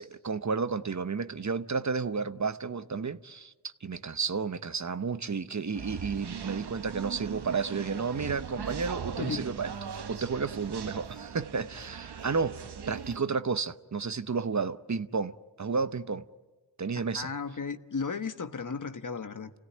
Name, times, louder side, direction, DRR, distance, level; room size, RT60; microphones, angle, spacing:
voice 1, 0.0-3.5 3.8-9.7 10.1-12.6 12.9-16.2 16.8-17.3, right 5 dB, 45° right, 0.9 m, -32 dB
sound 1, 5.7-13.2, right 7 dB, 70° right, 1.0 m, -40 dB
voice 2, 16.9-19.5, left 5 dB, 50° left, 1.3 m, -35 dB
28.0 x 17.0 x 9.9 m
cardioid pair, 60°, 41 cm